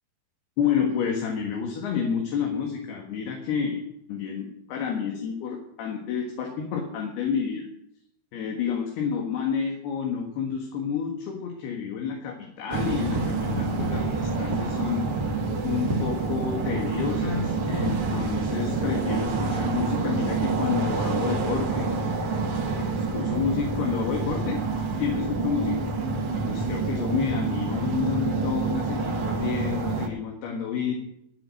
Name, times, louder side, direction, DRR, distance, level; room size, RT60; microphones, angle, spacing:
voice 1, 0.6-3.8 4.1-7.6 8.3-15.1 15.6-21.9 23.1-24.6 25.0-25.8 26.3-30.9, left 7 dB, 75° left, 1 dB, 3.7 m, -29 dB
sound 1, 12.7-30.1, right 4 dB, 50° right, 1.8 m, -27 dB
sound 2, 13.0-19.6, equal, 10° right, 2.0 m, -35 dB
14.0 x 8.9 x 7.8 m, 0.76 s
omnidirectional pair, 4.6 m